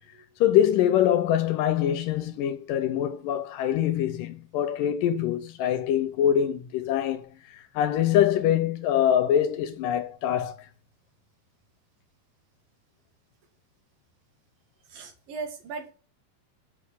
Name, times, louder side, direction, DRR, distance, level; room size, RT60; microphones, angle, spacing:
voice 1, 0.4-10.7, left 10 dB, 75° left, 2.3 m, -24 dB
voice 2, 14.9-15.9, right 4 dB, 70° right, 3.7 m, -37 dB
6.6 x 6.4 x 7.5 m
omnidirectional pair, 4.2 m